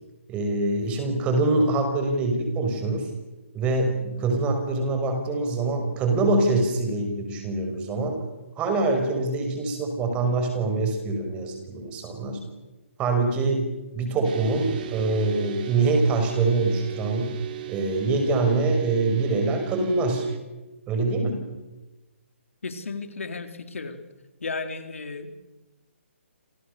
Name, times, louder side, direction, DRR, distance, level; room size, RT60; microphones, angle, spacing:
voice 1, 0.3-3.1 3.5-8.2 8.6-12.4 13.0-13.6 13.9-17.3 17.7-20.3 20.9-21.4, right 3 dB, 15° right, 5 dB, 5.8 m, -24 dB
sound 1, 14.2-20.4, right 13 dB, 40° right, 3.5 m, -37 dB
voice 2, 22.6-24.0 24.4-25.4, left 4 dB, 75° left, 7 dB, 4.1 m, -34 dB
29.0 x 28.0 x 6.9 m, 1.1 s
hypercardioid pair, 155°, 7 cm